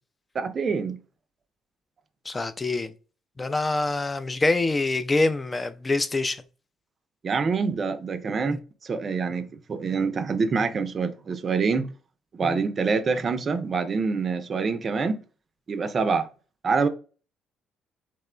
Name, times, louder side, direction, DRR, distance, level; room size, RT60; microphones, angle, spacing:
voice 1, 0.3-1.0 7.2-11.9 12.3-15.2 15.7-16.3 16.6-16.9, right 5 dB, 45° right, 0.4 m, -26 dB
voice 2, 2.3-2.9 3.4-6.4 8.5-8.6 12.4-12.6, left 2 dB, 25° left, 0.3 m, -25 dB
2.9 x 2.1 x 2.2 m
hypercardioid pair, 55°, 0 cm